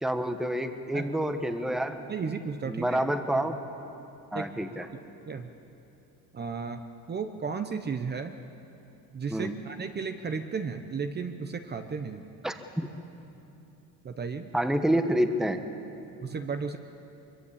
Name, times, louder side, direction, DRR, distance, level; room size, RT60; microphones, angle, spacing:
voice 1, 0.0-2.0 2.7-3.6 4.3-4.9 9.3-9.5 12.4-12.9 14.5-15.6, right 1 dB, ahead, 7 dB, 1.1 m, -28 dB
voice 2, 2.1-3.0 4.3-4.5 5.3-5.5 6.3-8.4 9.1-12.2 14.0-14.5 16.2-16.8, right 5 dB, 30° right, 7 dB, 0.9 m, -34 dB
24.0 x 23.0 x 8.7 m, 2.9 s
cardioid pair, 155°, 35 cm